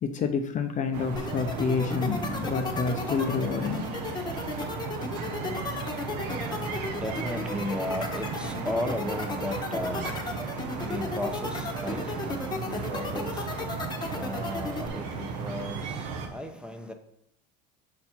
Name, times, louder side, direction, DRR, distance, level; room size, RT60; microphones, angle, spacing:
voice 1, 0.0-3.8 6.7-6.9, left 5 dB, 35° left, 7 dB, 0.6 m, -29 dB
sound 1, 0.9-16.3, right 5 dB, 90° right, 1.0 m, -35 dB
sound 2, 1.1-14.9, left 4 dB, 20° left, 1.1 m, -34 dB
voice 2, 6.3-13.5 14.2-16.0 16.3-16.9, left 1 dB, 5° right, 5 dB, 0.7 m, -35 dB
6.7 x 4.2 x 4.3 m, 0.75 s
supercardioid pair, 105°, 21 cm